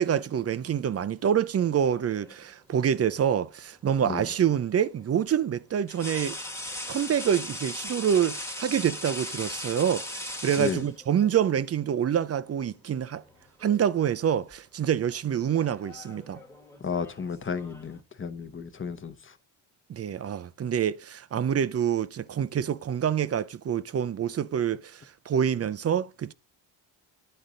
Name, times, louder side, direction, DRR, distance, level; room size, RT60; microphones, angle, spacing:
voice 1, 0.0-6.4 6.9-13.2 13.6-16.4 19.9-26.3, right 9 dB, 35° right, 0.4 m, -26 dB
sound 1, 1.6-2.4 4.2-4.4 5.9-11.3 12.5-12.7 13.1-13.9 14.2-14.5 15.4-18.0, left 1 dB, 5° left, 1.3 m, -39 dB
voice 2, 16.8-19.3, left 6 dB, 25° left, 0.9 m, -33 dB
9.9 x 3.9 x 3.7 m
cardioid pair, 80°, 48 cm